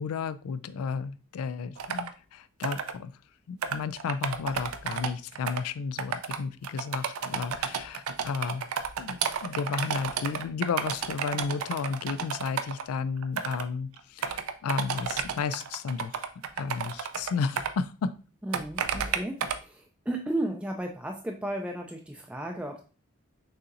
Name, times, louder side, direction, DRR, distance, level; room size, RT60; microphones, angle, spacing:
voice 1, 0.0-3.1 3.5-8.7 9.0-16.3 16.6-18.1, left 5 dB, 85° left, 14 dB, 0.3 m, -33 dB
sound 1, 1.8-2.1 2.6-2.9 3.6-5.6 6.0-6.4 6.6-12.8 13.2-13.7 14.0-17.7 18.5-19.6, right 7 dB, 80° right, 0.4 m, -32 dB
voice 2, 18.4-22.8, right 1 dB, 5° right, 1 dB, 0.3 m, -34 dB
6.5 x 2.8 x 2.5 m, 0.36 s
head